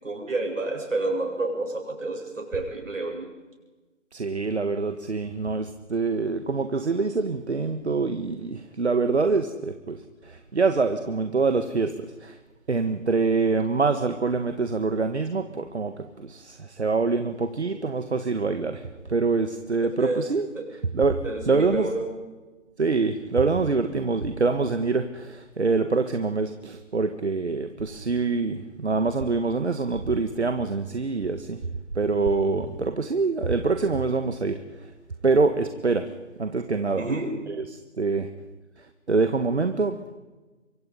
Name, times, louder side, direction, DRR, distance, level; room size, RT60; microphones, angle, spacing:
voice 1, 0.0-3.3 20.0-20.2 20.5-20.7 21.2-22.0 37.0-37.3, right 2 dB, 75° right, 2 dB, 7.7 m, -29 dB
voice 2, 4.1-12.4 12.7-22.0 22.8-31.6 32.0-34.9 35.2-36.1 36.4-37.1 37.5-38.3 38.8-40.2, right 4 dB, 60° right, 8 dB, 1.7 m, -25 dB
25.5 x 24.5 x 5.5 m, 1.2 s
figure-of-eight pair, 170°, 38 cm